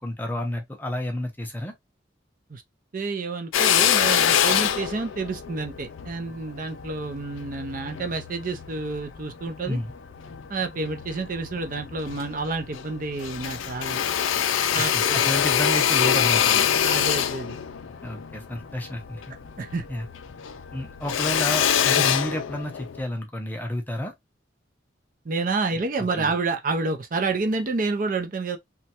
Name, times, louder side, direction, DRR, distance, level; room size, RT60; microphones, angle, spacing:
voice 1, 0.0-1.7 9.7-9.9 14.8-16.8 18.0-19.3 19.9-20.1 20.7-24.1 25.7-25.8 26.1-26.3, left 1 dB, 10° left, 0.5 m, -31 dB
voice 2, 2.9-9.8 10.5-14.0 14.7-15.2 16.8-17.6 19.6-19.8 22.0-22.1 25.3-28.6, right 3 dB, 45° right, 0.4 m, -29 dB
Drill, 3.5-8.1 8.6-9.8 10.3-11.2 11.6-11.7 11.9-12.9 13.2-19.9 20.1-23.0, left 9 dB, 90° left, 0.4 m, -24 dB
sound 1, 4.0-21.9, left 4 dB, 65° left, 0.8 m, -46 dB
3.1 x 2.3 x 2.7 m
head